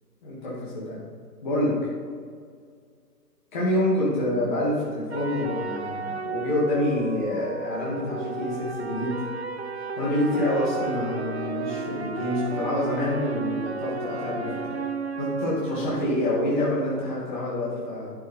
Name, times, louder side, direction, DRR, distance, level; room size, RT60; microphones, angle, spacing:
voice 1, 0.2-1.0 1.4-1.7 3.5-9.1 10.0-14.8 15.2-18.1, left 1 dB, 30° left, -7 dB, 2.3 m, -27 dB
sound 1, 5.1-16.7, right 4 dB, 45° right, 0.5 m, -33 dB
11.5 x 6.2 x 5.6 m, 2.1 s
hypercardioid pair, 170°, 49 cm